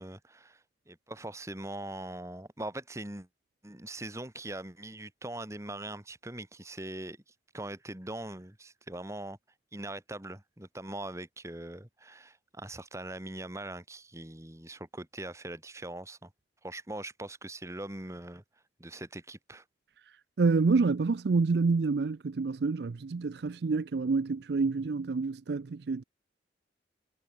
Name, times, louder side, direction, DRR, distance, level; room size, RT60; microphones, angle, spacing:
voice 1, 0.0-3.3 3.6-7.2 7.5-9.4 9.7-16.3 16.6-18.4 18.8-19.6, right 1 dB, 15° right, 1.9 m, -41 dB
voice 2, 20.4-26.0, right 4 dB, 65° right, 0.5 m, -28 dB
head